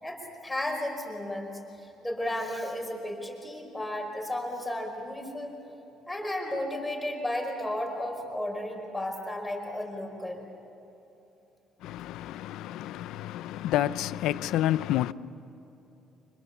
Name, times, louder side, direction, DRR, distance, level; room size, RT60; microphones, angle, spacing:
voice 1, 0.0-1.5 1.8-5.5 6.1-10.4, left 1 dB, 5° left, 5.1 m, -33 dB
voice 2, 11.8-15.1, left 13 dB, 80° left, 0.7 m, -29 dB
30.0 x 26.0 x 7.2 m
cardioid pair, 145°, 0 cm